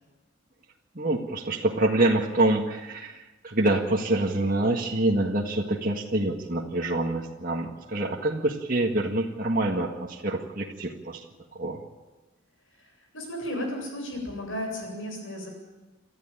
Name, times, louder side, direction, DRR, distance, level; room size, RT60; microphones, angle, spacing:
voice 1, 1.0-11.2 11.5-11.8, right 2 dB, 40° right, 0 dB, 1.7 m, -26 dB
voice 2, 12.7-15.5, left 1 dB, 65° left, 2 dB, 8.0 m, -34 dB
28.0 x 13.5 x 9.0 m, 1.2 s
head